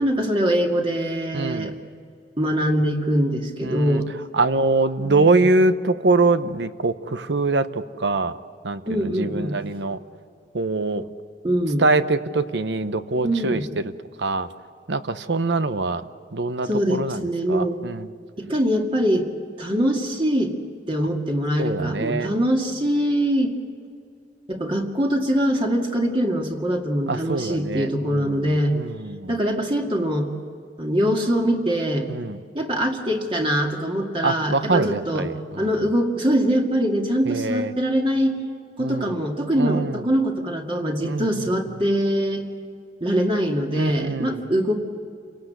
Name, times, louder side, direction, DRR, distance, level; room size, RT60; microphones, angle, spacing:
voice 1, 0.0-1.7 2.4-4.1 5.0-5.5 8.9-9.5 11.4-11.8 13.2-13.6 16.6-17.8 18.4-19.3 19.6-20.5 20.9-23.6 24.5-28.7 29.3-30.3 30.8-32.1 32.5-35.3 35.6-38.4 38.8-42.5 43.0-44.7, equal, 30° right, 1 dB, 2.2 m, -23 dB
voice 2, 1.3-1.7 3.6-4.0 4.3-8.4 8.6-10.0 10.5-11.0 11.8-13.9 14.2-14.5 14.9-16.0 16.3-18.1 21.6-22.3 27.1-29.3 32.1-32.4 34.2-35.7 37.3-37.7 38.8-39.1 39.6-40.0 41.0-41.5 43.8-44.4, right 3 dB, 80° right, 12 dB, 0.9 m, -24 dB
28.5 x 18.0 x 8.1 m, 2.4 s
head